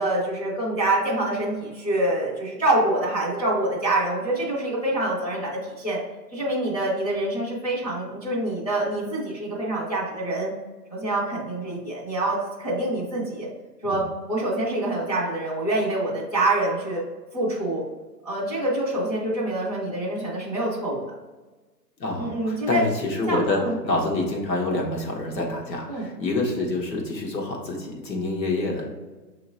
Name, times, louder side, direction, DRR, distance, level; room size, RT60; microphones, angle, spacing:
voice 1, 0.0-6.0 6.3-10.5 10.9-13.5 13.8-17.0 17.3-17.8 18.2-21.0 22.2-22.8 23.3-23.8 25.9-26.1, right 1 dB, 25° left, -8 dB, 0.5 m, -26 dB
voice 2, 22.0-28.9, left 2 dB, 85° left, -1 dB, 1.3 m, -27 dB
5.6 x 2.9 x 2.6 m, 1.2 s
hypercardioid pair, 160°, 50 cm